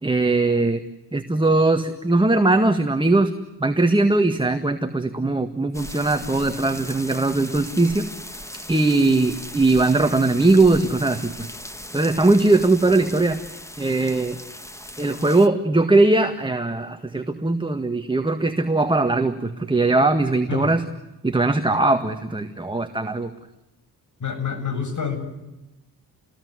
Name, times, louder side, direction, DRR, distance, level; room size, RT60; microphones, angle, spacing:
voice 1, 0.0-0.8 1.1-3.3 3.6-8.1 8.7-11.5 11.9-13.4 13.8-14.4 15.0-20.8 21.2-23.3, right 2 dB, 15° right, 7 dB, 1.7 m, -20 dB
sound 1, 5.7-15.5, left 1 dB, 10° left, 1.6 m, -38 dB
voice 2, 24.2-25.2, left 6 dB, 50° left, 6 dB, 7.8 m, -27 dB
29.5 x 20.5 x 9.7 m, 0.99 s
cardioid pair, 95°, 37 cm